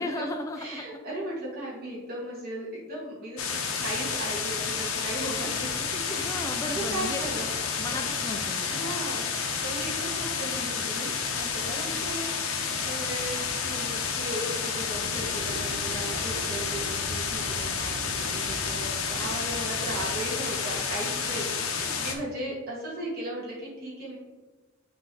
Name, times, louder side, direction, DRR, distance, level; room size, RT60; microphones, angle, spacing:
voice 1, 0.0-0.8 6.2-7.2 7.8-8.9, left 2 dB, 15° left, 3 dB, 0.4 m, -35 dB
voice 2, 0.6-3.4 3.8-5.7 6.3-7.5 8.7-9.2 9.6-24.2, right 1 dB, 45° right, -6 dB, 2.0 m, -37 dB
sound 1, 3.4-22.1, left 6 dB, 85° left, 0.8 m, -30 dB
sound 2, 14.9-20.2, right 1 dB, 80° right, 0.7 m, -40 dB
7.4 x 3.3 x 3.9 m, 1.2 s
head